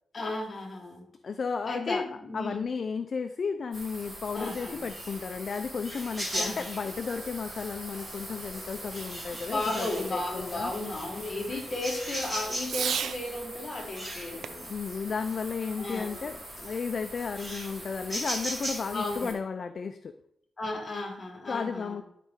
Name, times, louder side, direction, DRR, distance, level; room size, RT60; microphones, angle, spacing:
voice 1, 0.1-1.1 1.6-2.7 4.3-4.9 6.3-6.7 9.5-14.7 15.8-16.2 18.9-19.3 20.6-22.0, left 2 dB, 30° left, 0 dB, 1.6 m, -34 dB
voice 2, 1.2-2.0 2.3-10.7 14.7-20.1 21.5-22.0, left 5 dB, 45° left, 8 dB, 0.4 m, -34 dB
sound 1, 3.7-19.3, right 1 dB, 20° right, 2.9 m, -39 dB
Fireworks, 6.1-13.2 14.4-16.1, right 8 dB, 90° right, 0.4 m, -41 dB
12.0 x 4.1 x 3.6 m, 0.75 s
wide cardioid pair, 165°, 0 cm